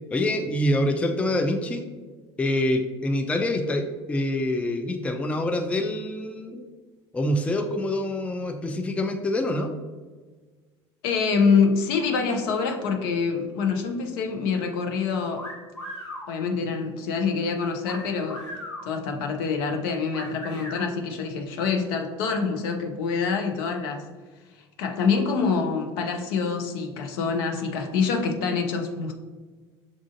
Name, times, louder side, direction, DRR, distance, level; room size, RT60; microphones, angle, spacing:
voice 1, 0.1-1.9 2.4-6.7 7.1-9.7, left 1 dB, 10° left, 5 dB, 0.4 m, -26 dB
voice 2, 11.0-15.4 16.3-18.4 18.9-24.1 24.8-29.1, left 5 dB, 60° left, 4 dB, 0.6 m, -25 dB
sound 1, 15.3-16.3 17.8-18.9 20.1-20.8, left 1 dB, 85° left, 1.1 m, -37 dB
6.2 x 2.4 x 2.5 m, 1.4 s
figure-of-eight pair, 70°, 14 cm